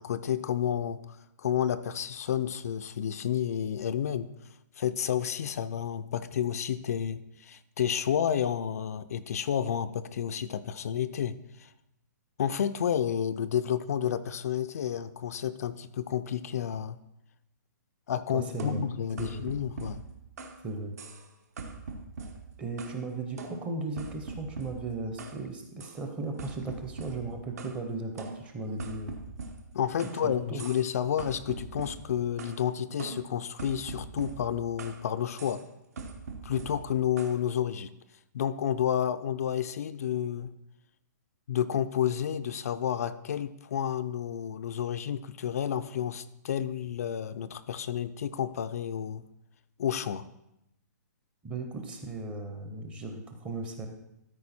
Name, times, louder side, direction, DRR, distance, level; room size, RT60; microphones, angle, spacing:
voice 1, 0.0-4.3 4.8-11.7 12.4-17.0 18.1-20.0 29.7-35.6 36.4-37.9 38.3-40.5 41.5-49.2 49.8-50.2, left 9 dB, 55° left, 10 dB, 0.4 m, -30 dB
voice 2, 18.3-18.8 19.2-19.5 20.6-20.9 22.6-29.2 30.1-30.6 51.4-53.9, right 3 dB, 10° right, 5 dB, 0.7 m, -36 dB
sound 1, 18.6-20.6 21.0-21.3 21.6-23.0 23.4-25.4 25.8-26.0 26.4-27.8 28.2-30.2 30.6-30.9 31.2-32.6 33.0-35.0 35.4-35.6 36.0-37.4, right 4 dB, 60° right, 1.0 m, -42 dB
13.0 x 4.7 x 4.2 m, 0.85 s
hypercardioid pair, 165°, 10 cm